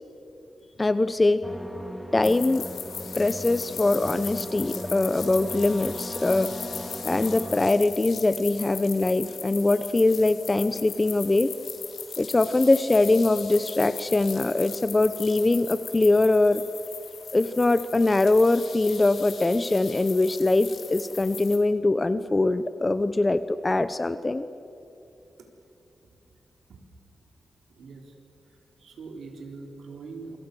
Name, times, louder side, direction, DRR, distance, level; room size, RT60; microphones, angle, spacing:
voice 1, 0.8-1.4 2.1-2.6 3.1-6.5 7.0-11.5 12.2-16.6 17.3-24.4, left 2 dB, 20° left, 12 dB, 0.7 m, -22 dB
sound 1, 1.4-7.6, equal, ahead, 1.4 m, -38 dB
sound 2, 2.2-21.6, left 6 dB, 75° left, 3.5 m, -39 dB
voice 2, 27.7-28.1 28.5-30.4, right 4 dB, 80° right, 2 dB, 4.0 m, -42 dB
28.0 x 26.5 x 6.9 m, 2.8 s
wide cardioid pair, 135°, 0 cm